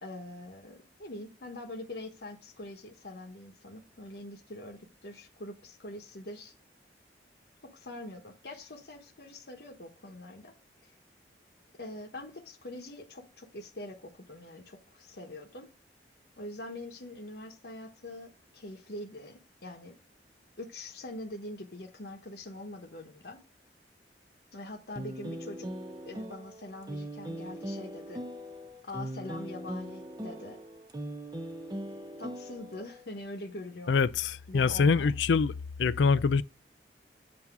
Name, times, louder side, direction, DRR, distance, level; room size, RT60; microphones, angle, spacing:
voice 1, 0.0-6.5 7.6-10.5 10.8-10.9 11.8-15.7 16.4-19.9 20.6-23.4 24.5-25.7 26.0-28.2 28.8-30.6 32.2-33.9 34.5-35.1, left 1 dB, 60° left, 1.0 m, -44 dB
sound 1, 25.0-33.0, right 1 dB, 20° right, 0.6 m, -40 dB
voice 2, 33.9-35.5 35.8-36.4, left 5 dB, 85° left, 0.4 m, -24 dB
7.9 x 2.8 x 5.9 m
head